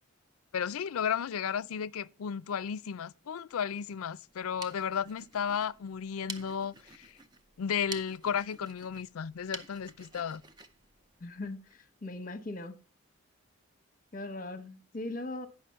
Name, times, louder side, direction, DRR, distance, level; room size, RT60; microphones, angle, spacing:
voice 1, 0.5-7.1 7.6-10.4, left 7 dB, 80° left, 0.4 m, -34 dB
sound 1, 4.3-11.8, right 3 dB, 20° right, 0.6 m, -49 dB
voice 2, 11.2-12.7 14.1-15.5, left 2 dB, 40° left, 0.9 m, -39 dB
9.8 x 5.7 x 5.6 m
head